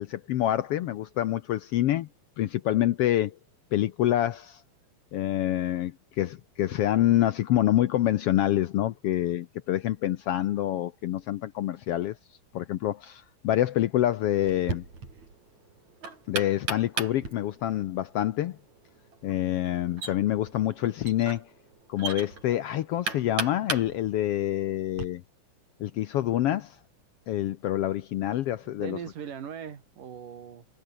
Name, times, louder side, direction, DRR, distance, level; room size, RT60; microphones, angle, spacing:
voice 1, 0.0-2.1 2.4-3.3 3.7-4.6 5.1-12.2 12.5-14.8 16.3-18.6 19.2-21.5 21.9-25.2 25.8-26.8 27.3-29.0, left 13 dB, 80° left, 1.3 m, -26 dB
Knock, 14.5-25.1, right 4 dB, 60° right, 6.9 m, -38 dB
voice 2, 28.7-30.7, right 8 dB, 85° right, 4.3 m, -40 dB
omnidirectional pair, 3.7 m